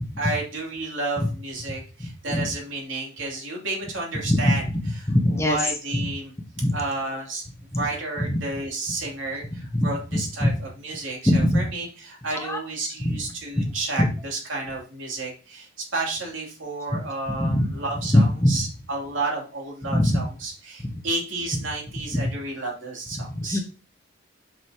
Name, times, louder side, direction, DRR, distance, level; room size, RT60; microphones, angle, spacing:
voice 1, 0.2-4.6 5.0-6.3 6.7-7.4 7.7-23.6, right 2 dB, 70° right, -1 dB, 2.8 m, -31 dB
voice 2, 4.3-5.6 6.6-6.7 7.7-7.8 9.8-9.9 10.1-10.5 11.3-11.6 12.3-12.6 13.0-13.2 13.6-13.7 14.0-14.1 17.4-17.7 18.1-18.6 19.9-20.2 22.1-22.2 23.4-23.6, left 1 dB, 15° left, 4 dB, 1.0 m, -21 dB
7.9 x 6.1 x 2.8 m, 0.35 s
head